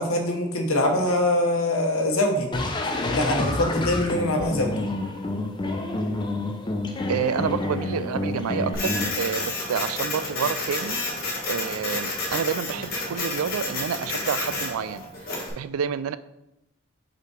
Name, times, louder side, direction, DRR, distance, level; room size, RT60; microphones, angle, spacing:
voice 1, 0.0-2.5 3.1-4.9, left 1 dB, 80° left, 3 dB, 1.0 m, -23 dB
sound 1, 2.5-9.1, left 2 dB, 20° left, 0.5 m, -28 dB
voice 2, 7.1-11.0 11.5-15.1 15.6-16.2, right 7 dB, 85° right, 14 dB, 0.3 m, -28 dB
Printer, 8.7-15.5, left 2 dB, 45° left, 1.6 m, -30 dB
5.3 x 4.2 x 4.8 m, 0.88 s
head